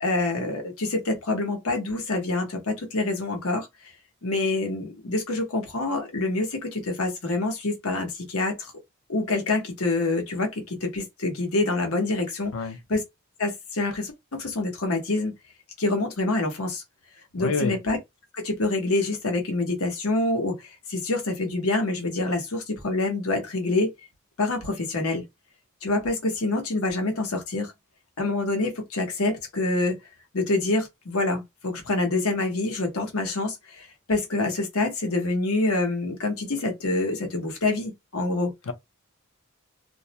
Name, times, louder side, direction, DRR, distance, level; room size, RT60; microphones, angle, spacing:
voice 1, 0.0-3.7 4.2-8.7 9.1-12.5 12.9-13.0 13.4-15.3 15.8-16.8 17.3-18.0 18.3-23.9 24.4-25.2 25.8-27.7 28.2-29.9 30.3-38.5, left 2 dB, 90° left, 1.0 m, -26 dB
voice 2, 17.4-17.8 38.7-38.8, left 3 dB, 75° left, 0.6 m, -27 dB
2.4 x 2.0 x 2.8 m
head